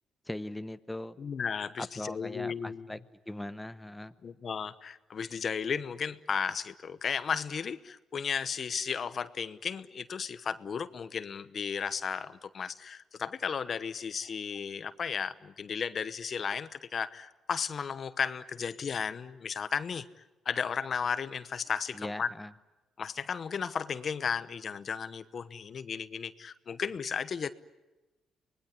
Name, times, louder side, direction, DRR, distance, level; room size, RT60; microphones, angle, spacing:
voice 1, 0.3-1.2 1.8-3.0 3.3-4.1 21.9-22.5, left 1 dB, 10° left, 11 dB, 0.9 m, -39 dB
voice 2, 1.2-2.9 4.2-20.1 20.4-22.3 23.0-27.5, left 6 dB, 50° left, 14 dB, 1.0 m, -34 dB
25.0 x 20.5 x 9.8 m, 1.1 s
cardioid pair, 90°, 0 cm